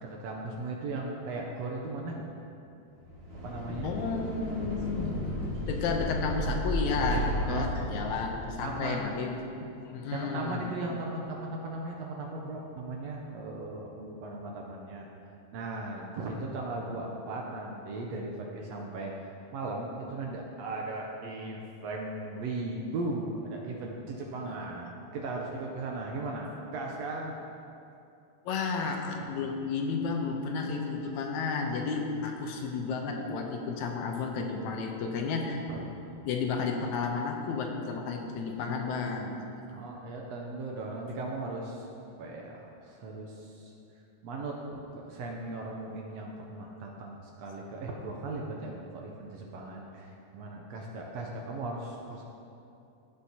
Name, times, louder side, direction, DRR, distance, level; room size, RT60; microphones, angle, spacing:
voice 1, 0.0-2.3 3.4-3.9 7.3-8.2 8.6-9.0 10.1-15.1 15.5-27.4 35.7-36.1 39.6-41.9 42.2-43.7 44.2-52.2, right 2 dB, 75° right, 0 dB, 1.6 m, -37 dB
sound 1, 3.0-8.7, equal, 30° right, 1.2 m, -33 dB
voice 2, 3.8-5.4 5.7-10.7 24.5-24.6 28.5-35.7 36.3-39.4, left 4 dB, 75° left, 2 dB, 2.0 m, -32 dB
16.0 x 6.7 x 2.8 m, 2.7 s
omnidirectional pair, 3.5 m